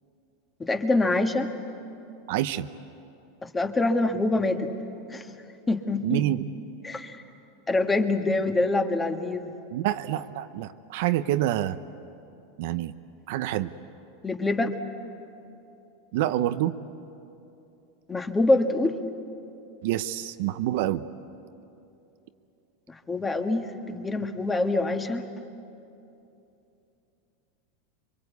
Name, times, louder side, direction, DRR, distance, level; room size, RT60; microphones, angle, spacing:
voice 1, 0.6-1.5 3.4-4.7 5.1-5.2 5.7-6.2 6.8-7.2 7.7-9.5 14.2-14.7 18.1-18.9 23.1-25.3, left 2 dB, 15° left, 6 dB, 1.5 m, -25 dB
voice 2, 2.3-2.7 6.0-6.4 9.7-11.8 12.6-12.9 13.3-13.7 16.1-16.8 19.8-21.0, right 13 dB, 70° right, 11 dB, 0.8 m, -27 dB
27.0 x 23.0 x 8.3 m, 2.8 s
supercardioid pair, 130°, 0 cm